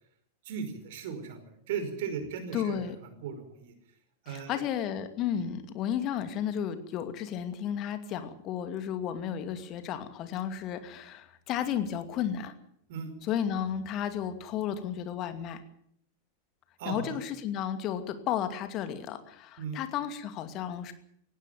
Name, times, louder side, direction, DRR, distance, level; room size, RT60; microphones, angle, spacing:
voice 1, 0.4-3.7 4.2-4.6 12.9-13.1 16.8-17.2 19.6-19.8, right 6 dB, 55° right, 8 dB, 5.2 m, -37 dB
voice 2, 2.5-3.0 4.3-12.5 13.3-15.6 16.9-20.9, left 9 dB, 35° left, 9 dB, 2.5 m, -33 dB
19.0 x 16.5 x 9.3 m, 0.68 s
figure-of-eight pair, 90°, 0 cm